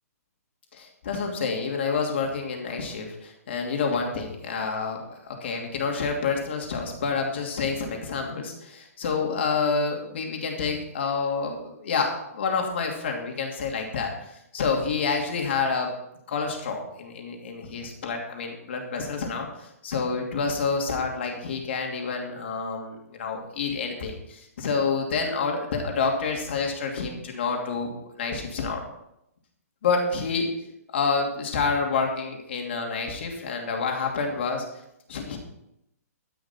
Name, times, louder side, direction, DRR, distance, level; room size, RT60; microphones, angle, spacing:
voice 1, 0.7-15.9 16.3-28.8 29.8-30.5 30.9-34.6 35.1-35.4, left 4 dB, 45° left, 1 dB, 2.7 m, -28 dB
11.5 x 10.5 x 4.4 m, 0.81 s
hypercardioid pair, 175°, 9 cm